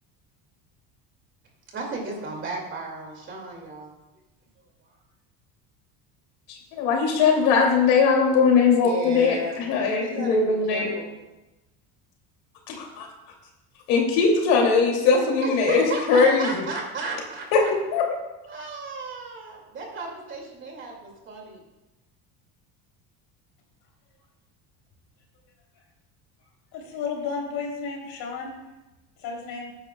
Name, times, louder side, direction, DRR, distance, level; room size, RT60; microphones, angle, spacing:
voice 1, 1.7-3.9 8.7-11.1 15.4-17.7 18.5-21.6, right 3 dB, 30° right, 0 dB, 2.3 m, -34 dB
voice 2, 6.5-10.9 12.7-13.1 13.9-16.6 17.5-17.6 17.9-18.0, left 5 dB, 80° left, 0 dB, 2.7 m, -20 dB
voice 3, 26.7-28.6 29.2-29.7, left 5 dB, 60° left, -1 dB, 3.3 m, -32 dB
19.0 x 9.7 x 2.3 m, 1.0 s
cardioid pair, 170°, 39 cm